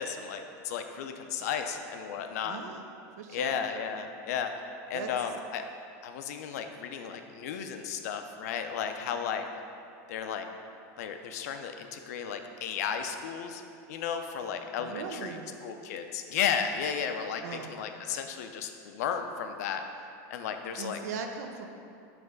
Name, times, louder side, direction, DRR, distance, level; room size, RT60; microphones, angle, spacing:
voice 1, 0.0-2.6 3.3-4.5 4.9-5.6 6.0-9.5 10.1-10.5 11.0-13.6 13.9-15.4 15.6-19.8 20.3-21.0, left 7 dB, 80° left, 6 dB, 0.5 m, -34 dB
voice 2, 2.4-2.8 3.2-3.6 4.9-5.1 14.8-15.5 17.4-17.7 20.8-21.7, right 6 dB, 85° right, 5 dB, 0.6 m, -39 dB
5.8 x 3.2 x 5.2 m, 2.6 s
supercardioid pair, 175°, 8 cm